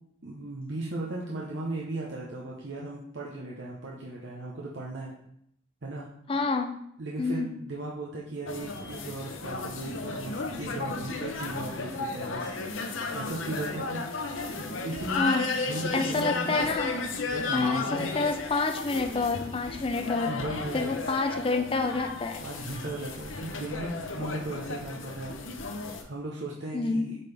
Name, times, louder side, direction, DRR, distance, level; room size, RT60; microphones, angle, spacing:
voice 1, 0.2-5.2 5.8-6.1 7.0-14.0 14.5-16.7 17.3-18.1 20.3-21.0 22.4-25.3 26.0-27.2, right 2 dB, 60° right, -4 dB, 0.9 m, -37 dB
voice 2, 6.3-6.8 7.2-7.6 15.2-15.5 15.9-16.9 17.5-20.3 20.7-22.4 26.7-27.1, left 3 dB, 25° left, 4 dB, 0.4 m, -28 dB
sound 1, 8.5-26.0, left 3 dB, 70° left, 0.8 m, -34 dB
8.1 x 3.9 x 3.4 m, 0.73 s
head